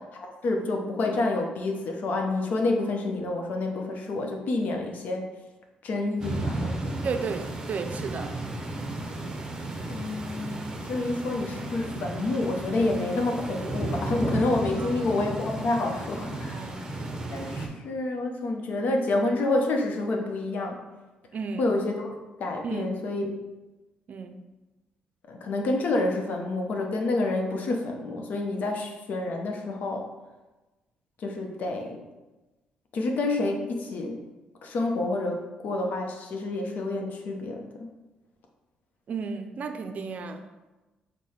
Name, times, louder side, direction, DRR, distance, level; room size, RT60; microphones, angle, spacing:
voice 1, 0.1-5.3 5.8-7.0 9.9-16.6 17.3-20.8 21.6-23.3 25.3-30.1 31.2-32.0 32.9-34.2 34.6-37.9, left 2 dB, 65° left, 2 dB, 0.7 m, -28 dB
sound 1, 6.2-17.7, right 2 dB, 25° right, 0.7 m, -34 dB
voice 2, 7.0-8.3 14.8-14.9 16.5-16.8 21.3-21.8 22.6-22.9 24.1-24.4 39.1-40.5, right 5 dB, 55° right, 7 dB, 0.4 m, -33 dB
4.7 x 2.2 x 4.2 m, 1.1 s
supercardioid pair, 65°, 3 cm